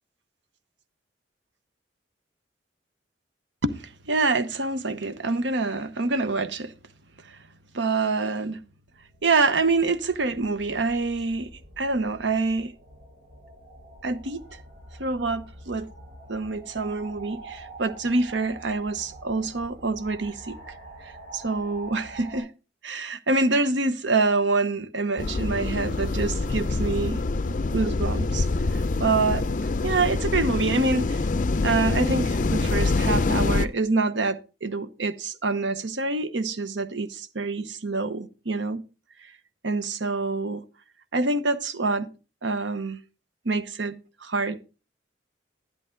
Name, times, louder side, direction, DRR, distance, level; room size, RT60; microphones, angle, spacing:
voice 1, 3.6-6.7 7.7-8.6 9.2-11.5 11.8-12.7 14.0-14.4 15.0-15.9 16.3-20.6 21.3-22.5 22.8-28.5 28.7-29.4 29.8-31.2 31.6-38.8 39.6-40.6 41.1-42.1 42.4-43.0 43.4-44.6, right 3 dB, 75° right, 1.0 m, -26 dB
sound 1, 9.2-22.4, right 2 dB, 50° right, 6.1 m, -45 dB
sound 2, 25.2-33.7, left 3 dB, 45° left, 0.5 m, -25 dB
11.0 x 10.5 x 3.8 m
head